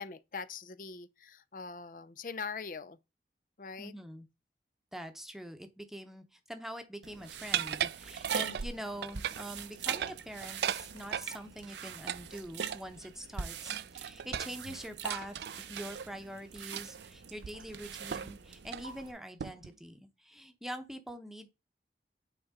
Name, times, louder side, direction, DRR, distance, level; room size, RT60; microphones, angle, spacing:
voice 1, 0.0-3.0 3.6-3.9 8.3-8.6, left 5 dB, 50° left, 0.5 m, -42 dB
voice 2, 3.8-4.3 4.9-21.5, equal, ahead, 0.9 m, -44 dB
sound 1, 7.0-19.1, right 6 dB, 85° right, 0.7 m, -42 dB
sound 2, 7.5-8.7 9.0-9.5 9.8-11.3 12.1-13.1 13.7-15.9 16.7-17.0 17.4-17.5 18.1-18.4 18.7-18.9 19.4-19.7, right 9 dB, 65° right, 0.3 m, -37 dB
9.1 x 4.4 x 3.7 m
head